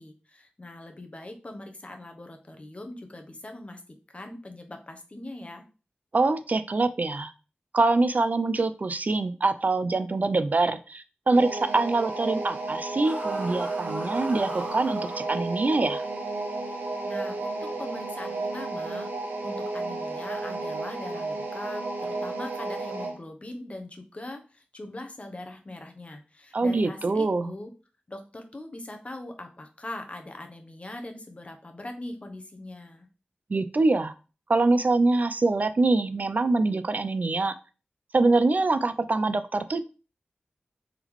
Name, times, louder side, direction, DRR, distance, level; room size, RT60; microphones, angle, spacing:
voice 1, 0.0-3.8 4.1-5.6 17.0-19.1 19.4-27.7 28.1-33.1, left 1 dB, 40° left, 5 dB, 0.8 m, -41 dB
voice 2, 6.1-7.3 7.7-16.0 26.5-27.5 33.5-34.1 34.5-37.5 38.1-39.8, right 3 dB, 50° right, 11 dB, 0.3 m, -24 dB
sound 1, 11.3-23.2, right 2 dB, 85° right, 0.7 m, -32 dB
sound 2, 13.0-15.2, right 1 dB, 35° right, 0.9 m, -38 dB
3.6 x 3.6 x 3.0 m, 0.35 s
wide cardioid pair, 55°, 3 cm